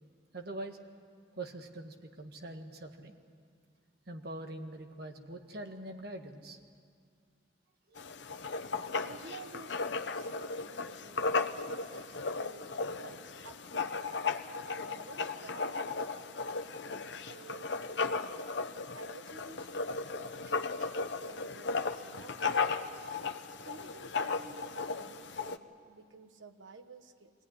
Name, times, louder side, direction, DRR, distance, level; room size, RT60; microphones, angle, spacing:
voice 1, 0.3-0.8 1.3-3.2 4.1-6.6 7.9-8.0 11.9-12.0, right 1 dB, 55° right, 4 dB, 1.6 m, -43 dB
Writing, 8.0-25.6, left 4 dB, 70° left, 0.9 m, -36 dB
voice 2, 8.7-18.4 18.9-22.9 23.2-27.3, right 3 dB, 85° right, 7 dB, 1.3 m, -53 dB
23.0 x 17.0 x 10.0 m, 2.1 s
head